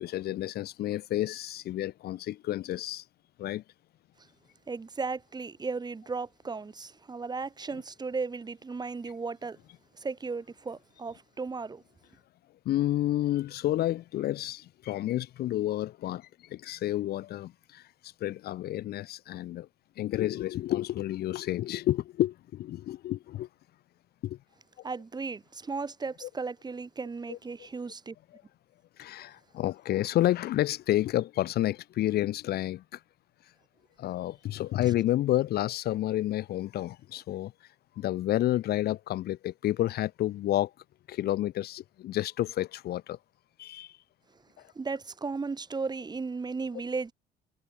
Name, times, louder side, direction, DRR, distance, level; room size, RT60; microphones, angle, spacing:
voice 1, 0.0-3.0 3.4-3.6 12.7-19.7 20.0-23.5 24.2-24.4 26.2-26.3 27.3-27.4 28.3-28.4 29.0-33.0 34.0-37.5 38.0-40.7 41.1-43.2 43.6-44.0 44.6-44.7, left 14 dB, 70° left, 1.7 m, -30 dB
voice 2, 4.7-9.6 10.0-11.8 24.8-28.2 44.8-47.1, right 4 dB, 25° right, 6.9 m, -35 dB
cardioid pair, 110°, 17 cm